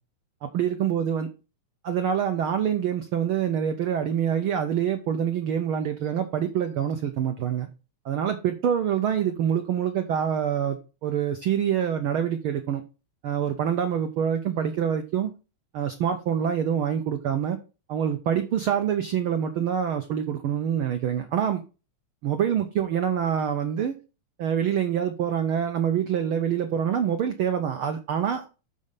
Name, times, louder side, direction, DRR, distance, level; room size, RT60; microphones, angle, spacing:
voice 1, 0.4-1.3 1.8-7.7 8.0-12.8 13.2-15.3 15.7-17.6 17.9-21.6 22.2-23.9 24.4-28.5, right 8 dB, 85° right, 7 dB, 1.2 m, -26 dB
5.6 x 5.3 x 6.5 m, 0.32 s
omnidirectional pair, 3.3 m